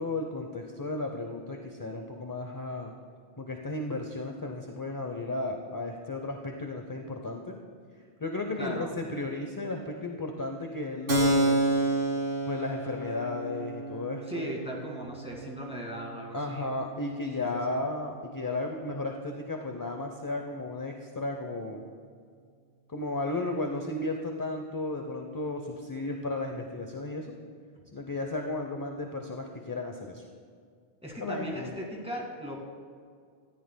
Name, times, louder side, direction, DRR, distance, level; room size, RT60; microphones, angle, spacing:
voice 1, 0.0-2.9 3.4-7.6 8.2-11.6 12.5-14.5 16.3-21.8 22.9-27.3 27.9-30.2 31.2-31.7, left 2 dB, 25° left, 3 dB, 0.6 m, -34 dB
voice 2, 8.6-8.9 14.3-16.7 17.4-17.8 31.0-32.6, equal, 5° right, -3 dB, 2.0 m, -38 dB
Keyboard (musical), 11.1-18.4, right 2 dB, 65° right, 1.6 m, -31 dB
18.0 x 14.0 x 2.2 m, 2.1 s
omnidirectional pair, 1.1 m